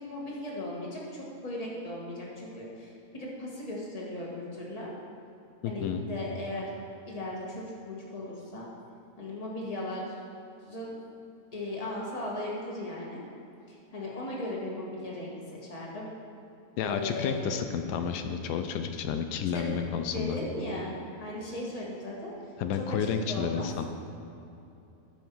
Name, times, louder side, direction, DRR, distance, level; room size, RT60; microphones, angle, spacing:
voice 1, 0.0-4.9 5.6-6.7 7.0-8.6 9.2-10.1 10.6-10.9 11.5-13.2 13.7-16.1 16.8-17.5 19.5-19.7 20.1-22.3 22.7-23.7, left 1 dB, 25° left, -4 dB, 1.6 m, -37 dB
voice 2, 5.6-6.0 16.8-20.4 22.6-23.8, left 7 dB, 85° left, 7 dB, 1.2 m, -31 dB
13.0 x 5.6 x 4.6 m, 2.8 s
omnidirectional pair, 1.7 m